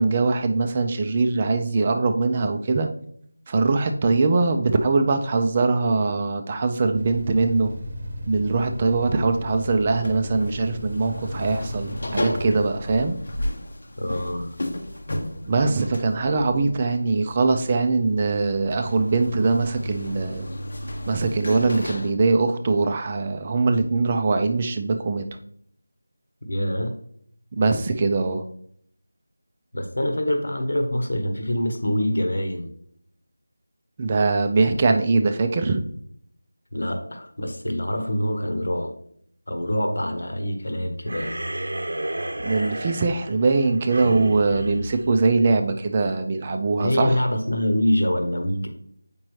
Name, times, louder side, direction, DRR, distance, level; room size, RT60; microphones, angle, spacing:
voice 1, 0.0-2.9 3.5-7.7 8.3-13.2 15.5-20.5 21.1-25.2 27.5-28.4 34.0-35.8 42.4-47.2, right 3 dB, 20° right, 6 dB, 0.5 m, -22 dB
sound 1, 6.9-12.6, equal, 40° right, 0.9 m, -34 dB
sound 2, 10.0-22.1, left 1 dB, 55° left, 0.8 m, -33 dB
voice 2, 14.0-14.6 26.5-26.9 29.7-32.7 36.7-38.9 39.5-41.4 46.8-48.7, left 1 dB, 75° left, 5 dB, 1.2 m, -25 dB
sound 3, 41.1-45.8, right 1 dB, 80° right, 0.9 m, -32 dB
7.4 x 5.2 x 3.2 m, 0.66 s
figure-of-eight pair, 175°, 0 cm